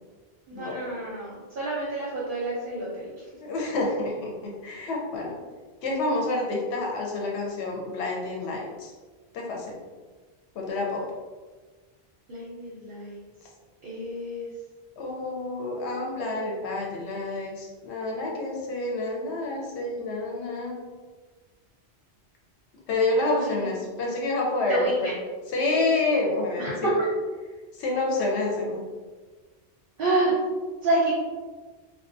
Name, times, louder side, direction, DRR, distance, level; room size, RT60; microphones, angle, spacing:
voice 1, 0.5-3.0 12.3-13.2 13.8-14.5 23.2-23.7 24.7-25.2 26.6-26.7 30.0-30.3 30.8-31.2, right 2 dB, 60° right, -6 dB, 0.7 m, -28 dB
voice 2, 3.4-5.4 5.8-8.9 9.3-9.8 10.5-11.1 15.0-20.9 22.9-25.1 25.5-27.0 27.7-28.9, left 2 dB, 85° left, -1 dB, 0.9 m, -28 dB
2.4 x 2.1 x 2.5 m, 1.4 s
omnidirectional pair, 1.1 m